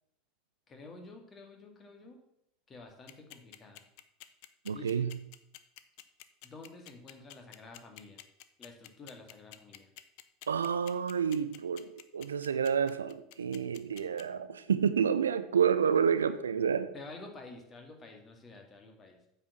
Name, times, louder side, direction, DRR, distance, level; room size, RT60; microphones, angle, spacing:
voice 1, 0.7-2.2 2.7-3.8 4.7-5.1 6.4-8.2 8.6-9.9 16.9-19.2, left 3 dB, 25° left, 2.0 m, -50 dB
sound 1, 2.9-14.2, left 16 dB, 55° left, 0.6 m, -50 dB
voice 2, 4.6-5.1 10.5-16.9, right 7 dB, 75° right, 0.5 m, -29 dB
8.7 x 4.8 x 6.2 m
figure-of-eight pair, 75°, 0 cm